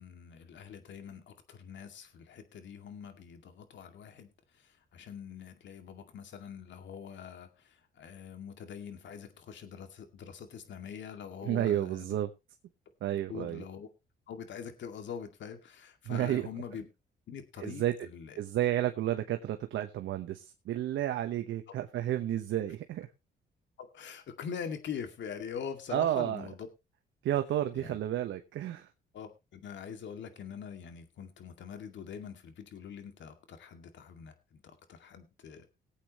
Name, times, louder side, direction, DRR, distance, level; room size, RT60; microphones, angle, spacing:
voice 1, 0.0-4.3 4.5-12.1 13.3-13.9 14.3-16.9 17.3-18.4 23.8-26.7 27.7-28.0 29.1-35.7, left 7 dB, 65° left, 7 dB, 2.2 m, -44 dB
voice 2, 11.4-12.3 13.0-13.6 16.1-16.5 17.6-17.9 18.4-23.1 25.9-26.5 27.2-28.9, right 12 dB, 75° right, 7 dB, 1.0 m, -31 dB
20.0 x 8.4 x 3.0 m, 0.26 s
cardioid pair, 90°, 20 cm